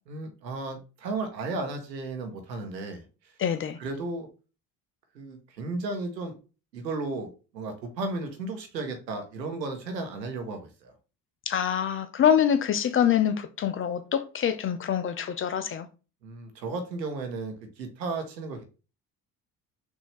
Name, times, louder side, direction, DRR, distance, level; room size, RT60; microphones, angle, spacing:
voice 1, 0.1-3.0 3.8-4.3 5.1-6.4 6.7-10.9 16.2-18.6, right 3 dB, 85° right, 1.0 m, -34 dB
voice 2, 3.4-3.8 11.5-15.9, left 9 dB, 25° left, 0.5 m, -25 dB
6.1 x 2.7 x 3.2 m
figure-of-eight pair, 55°, 49 cm